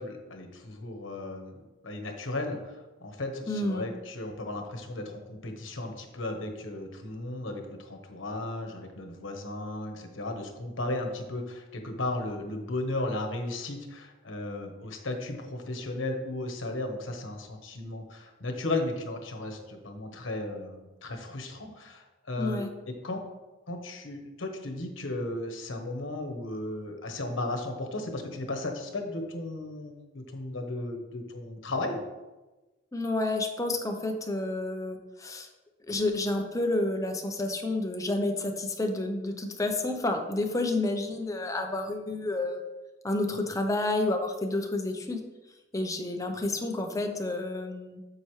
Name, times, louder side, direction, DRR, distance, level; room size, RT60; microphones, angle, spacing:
voice 1, 0.0-23.2 23.7-32.0, left 2 dB, 80° left, 4 dB, 1.2 m, -35 dB
voice 2, 3.5-3.9 22.4-22.7 32.9-35.5 35.9-42.6 43.0-45.3 45.7-48.0, left 2 dB, 15° left, 4 dB, 0.7 m, -30 dB
7.9 x 6.8 x 3.2 m, 1.1 s
head